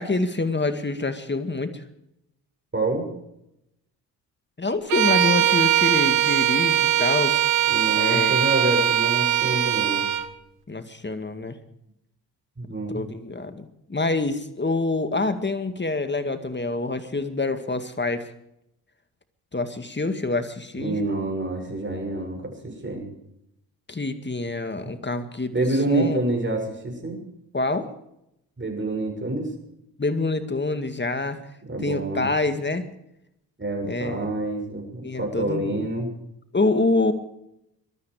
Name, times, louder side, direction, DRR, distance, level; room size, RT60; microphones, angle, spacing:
voice 1, 0.0-1.8 4.6-7.4 7.9-8.4 10.7-11.6 12.9-18.3 19.5-21.0 23.9-26.2 27.5-27.9 30.0-31.4 31.8-32.9 33.8-34.3 35.0-35.9 36.5-37.1, left 3 dB, 20° left, 9 dB, 2.2 m, -26 dB
voice 2, 2.7-3.1 7.7-10.1 12.6-13.0 20.8-23.0 24.8-24.9 25.5-27.2 28.6-29.5 31.6-32.3 33.6-36.1, right 2 dB, 25° right, 2 dB, 6.9 m, -27 dB
Bowed string instrument, 4.9-10.3, right 11 dB, 90° right, 1.1 m, -21 dB
21.5 x 13.0 x 5.0 m, 0.80 s
supercardioid pair, 55°, 47 cm